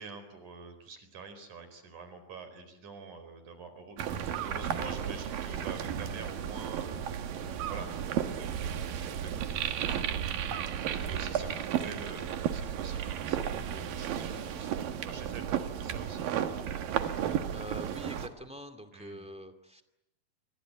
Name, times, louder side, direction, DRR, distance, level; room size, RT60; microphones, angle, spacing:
voice 1, 0.0-15.5 15.8-16.3 18.9-19.3, right 4 dB, 65° right, 10 dB, 5.9 m, -47 dB
sound 1, 4.0-18.3, right 9 dB, 85° right, 3.3 m, -33 dB
sound 2, 10.8-11.3 12.0-12.4 13.1-13.5 14.3-14.9 15.6-16.4 16.9-17.6 18.0-18.4, left 4 dB, 75° left, 4.8 m, -55 dB
voice 2, 17.5-19.8, equal, 5° right, 9 dB, 1.5 m, -44 dB
27.5 x 23.5 x 9.1 m, 0.88 s
omnidirectional pair, 3.9 m